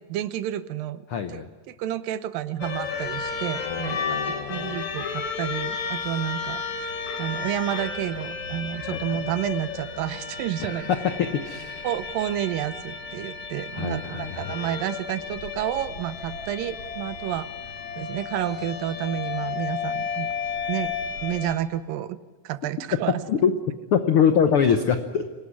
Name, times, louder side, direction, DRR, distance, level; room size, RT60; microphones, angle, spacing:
voice 1, 0.0-10.9 11.8-17.5 18.0-20.3 20.7-20.9 21.2-22.2 22.4-23.2, right 12 dB, 85° right, 13 dB, 2.6 m, -30 dB
voice 2, 1.1-1.5 3.6-4.9 8.9-9.2 10.6-11.9 13.8-14.6 23.3-23.5 23.9-25.3, left 7 dB, 80° left, 8 dB, 1.2 m, -24 dB
sound 1, 2.6-21.5, left 5 dB, 60° left, 3.1 m, -33 dB
25.5 x 18.5 x 9.6 m, 1.3 s
omnidirectional pair, 3.9 m